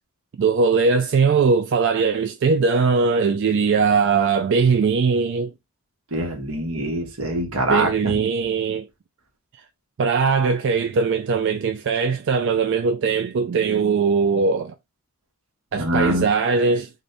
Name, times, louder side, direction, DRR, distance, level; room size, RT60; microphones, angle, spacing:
voice 1, 0.4-5.5 7.7-8.9 10.0-14.7 15.7-16.9, right 5 dB, 55° right, 0.3 m, -20 dB
voice 2, 6.1-8.1 15.8-16.3, right 1 dB, 80° right, 1.3 m, -24 dB
4.0 x 2.6 x 3.3 m
head